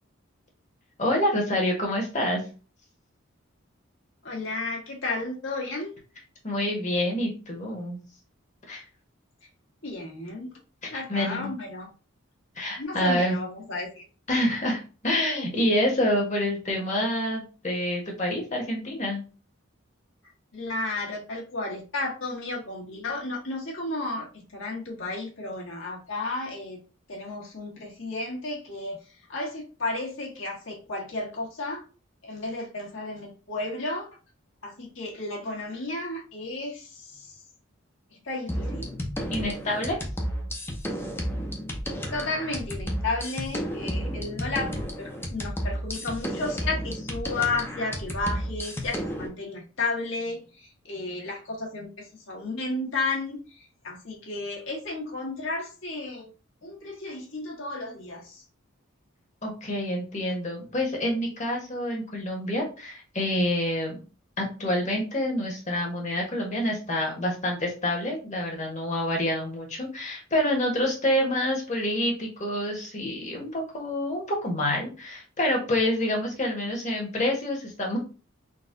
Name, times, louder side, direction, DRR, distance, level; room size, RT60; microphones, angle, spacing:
voice 1, 1.0-2.4 6.4-8.0 8.7-8.8 10.8-11.5 12.6-13.4 14.3-19.2 39.3-40.0 59.4-64.0 64.4-78.0, left 1 dB, 35° left, 0 dB, 1.2 m, -27 dB
voice 2, 4.2-5.9 9.8-10.6 10.9-11.9 12.8-13.9 20.5-26.8 27.1-31.8 32.2-34.1 34.6-37.4 38.2-38.9 42.1-56.3 56.6-58.4, left 2 dB, 65° left, -3 dB, 1.5 m, -33 dB
sound 1, 38.5-49.3, equal, 10° left, 0.6 m, -32 dB
4.0 x 2.3 x 3.7 m, 0.35 s
head